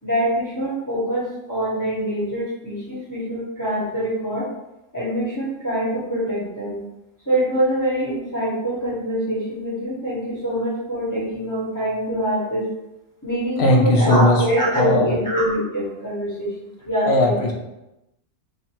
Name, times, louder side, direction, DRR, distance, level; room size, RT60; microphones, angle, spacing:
voice 1, 0.0-4.5 4.9-6.8 7.3-12.6 13.2-17.5, equal, 15° left, -9 dB, 1.1 m, -24 dB
voice 2, 13.6-14.4 14.7-15.2 17.1-17.5, left 1 dB, 60° left, 0 dB, 0.9 m, -17 dB
3.2 x 2.4 x 4.4 m, 0.94 s
omnidirectional pair, 1.3 m